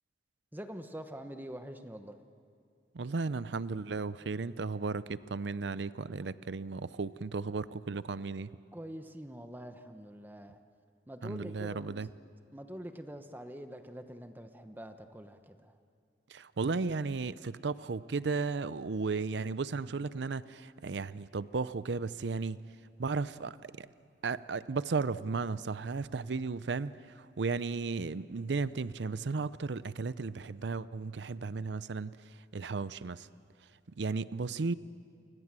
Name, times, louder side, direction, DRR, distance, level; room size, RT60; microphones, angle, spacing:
voice 1, 0.5-2.2 8.7-10.6 11.1-12.1 12.5-15.7, equal, 10° right, 7 dB, 1.0 m, -45 dB
voice 2, 2.9-8.5 11.2-12.1 16.3-22.6 23.0-23.9 24.2-33.3 34.0-34.8, right 4 dB, 80° right, 16 dB, 0.6 m, -35 dB
29.0 x 24.5 x 7.5 m, 2.4 s
head